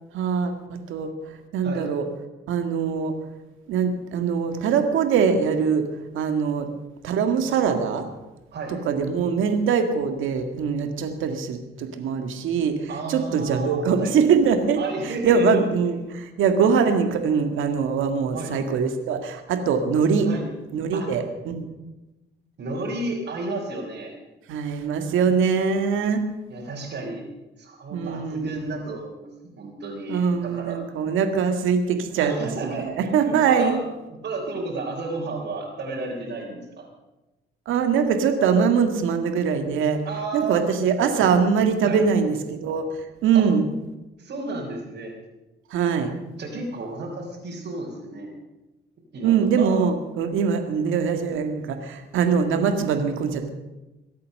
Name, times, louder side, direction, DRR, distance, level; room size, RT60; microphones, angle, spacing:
voice 1, 0.1-1.1 1.5-2.1 2.5-3.2 3.7-5.9 6.1-6.7 7.0-8.0 8.7-14.8 15.1-20.3 20.7-21.7 24.5-26.2 27.9-28.8 30.1-32.4 32.6-33.8 37.7-40.0 40.3-42.9 43.2-43.6 45.7-46.1 49.2-53.5, right 6 dB, 85° right, 6 dB, 2.0 m, -22 dB
voice 2, 12.9-14.1 14.8-15.6 18.3-18.5 20.2-20.5 20.9-21.1 22.6-24.1 26.5-27.2 27.6-31.1 32.2-33.8 34.1-36.9 40.0-40.6 41.8-42.0 43.3-43.4 44.2-45.1 46.4-48.4 49.1-49.7 53.4-53.5, right 3 dB, 60° right, -4 dB, 3.6 m, -32 dB
23.0 x 8.5 x 6.6 m, 1.0 s
cardioid pair, 90°, 20 cm